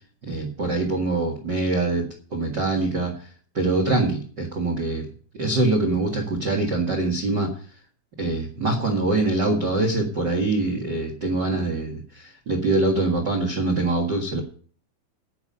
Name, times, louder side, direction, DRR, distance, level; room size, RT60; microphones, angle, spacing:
voice 1, 0.2-3.1 3.5-5.1 5.3-7.5 8.2-14.4, right 2 dB, 60° right, 4 dB, 1.1 m, -24 dB
10.5 x 9.6 x 5.5 m, 0.43 s
omnidirectional pair, 5.2 m